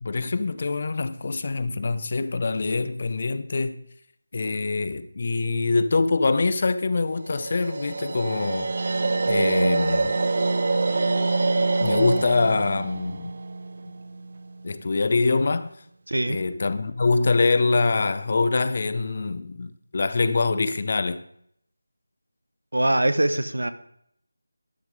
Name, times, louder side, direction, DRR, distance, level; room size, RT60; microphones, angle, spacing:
voice 1, 0.0-3.8 4.3-8.7 9.3-10.2 11.8-13.3 14.6-15.7 16.3-21.2, left 3 dB, 40° left, 0.5 m, -24 dB
sound 1, 7.3-14.4, right 3 dB, 45° right, 0.4 m, -25 dB
voice 2, 16.1-16.4 22.7-23.7, right 1 dB, 80° right, 0.8 m, -22 dB
12.5 x 5.7 x 4.8 m
figure-of-eight pair, 170°, 0 cm